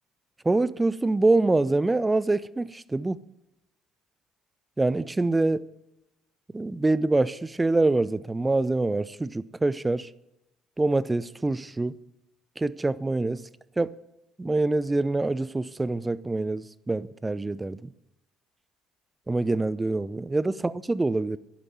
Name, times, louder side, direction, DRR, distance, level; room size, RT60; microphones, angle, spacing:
voice 1, 0.4-3.2 4.8-5.7 6.5-10.1 10.8-12.0 12.6-13.4 13.8-13.9 14.4-17.8 19.3-21.4, right 2 dB, 15° right, 0.6 m, -25 dB
11.0 x 9.2 x 7.8 m
figure-of-eight pair, 50°, 0 cm